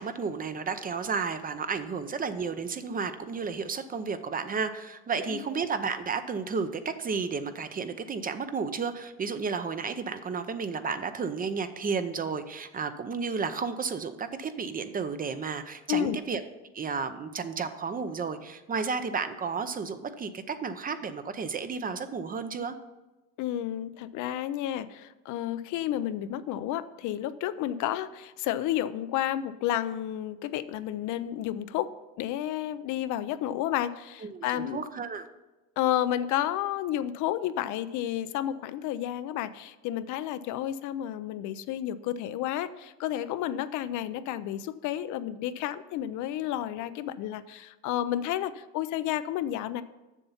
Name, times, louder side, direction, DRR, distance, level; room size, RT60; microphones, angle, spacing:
voice 1, 0.0-16.4 16.7-22.8 34.2-35.3, right 5 dB, 25° right, 10 dB, 0.6 m, -32 dB
voice 2, 23.4-31.9 32.2-34.8 35.8-49.8, left 12 dB, 65° left, 13 dB, 0.5 m, -31 dB
7.2 x 6.9 x 5.6 m, 1.1 s
cardioid pair, 110°, 32 cm